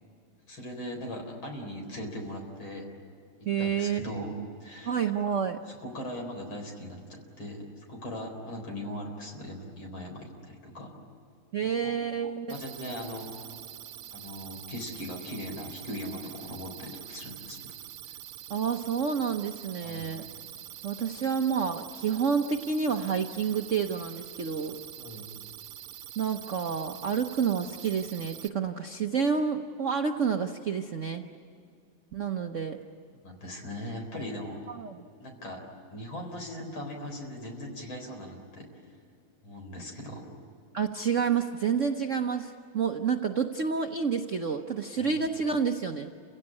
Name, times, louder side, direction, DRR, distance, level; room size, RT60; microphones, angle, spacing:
voice 1, 0.5-2.9 3.6-4.3 4.6-5.0 5.7-10.9 11.8-11.9 12.5-13.4 14.1-17.7 19.8-20.1 25.0-25.3 33.2-34.6 35.2-35.6 35.9-38.7 39.4-40.2 45.0-45.2, left 1 dB, 65° left, 2 dB, 5.0 m, -39 dB
voice 2, 3.5-4.5 4.8-5.6 11.5-12.6 18.5-20.2 20.8-24.8 26.2-31.2 32.1-32.8 34.8-35.0 40.7-46.1, right 6 dB, 55° right, 5 dB, 0.8 m, -29 dB
sound 1, 12.5-28.5, right 12 dB, 80° right, 1.6 m, -45 dB
29.5 x 16.5 x 9.7 m, 2.5 s
omnidirectional pair, 2.4 m